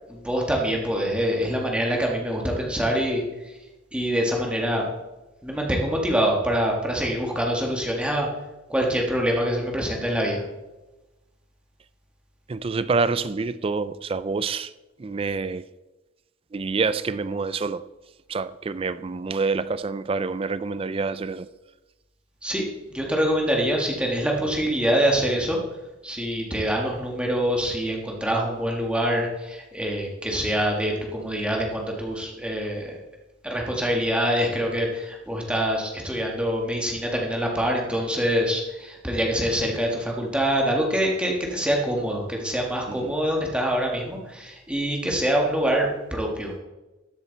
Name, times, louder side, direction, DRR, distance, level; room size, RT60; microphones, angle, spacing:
voice 1, 0.1-3.2 3.9-4.9 5.4-8.3 8.7-10.4 22.4-22.6 22.9-25.6 26.0-33.0 33.4-46.6, equal, 5° right, 1.7 m, -25 dB
voice 2, 12.5-14.7 15.0-15.7 16.5-17.8 18.3-21.5 42.9-43.1, right 4 dB, 30° right, 0.3 m, -27 dB
13.5 x 7.3 x 4.1 m
head